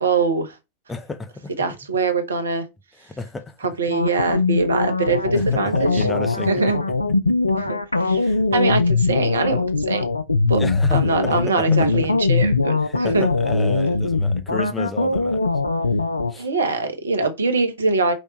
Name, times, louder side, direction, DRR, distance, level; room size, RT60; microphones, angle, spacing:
voice 1, 0.0-0.5 1.6-2.7 3.8-6.1 6.5-6.8 7.5-10.0 10.5-10.6 10.9-13.3 16.4-18.1, right 3 dB, 70° right, 0.9 m, -23 dB
voice 2, 0.9-1.5 3.0-3.6 5.3-6.6 7.2-7.3 8.2-8.4 10.6-12.1 12.8-15.5 16.3-16.5, left 3 dB, 15° left, 0.6 m, -32 dB
sound 1, 3.9-16.3, left 3 dB, 80° left, 0.4 m, -21 dB
5.2 x 3.2 x 3.1 m
figure-of-eight pair, 90°, 0 cm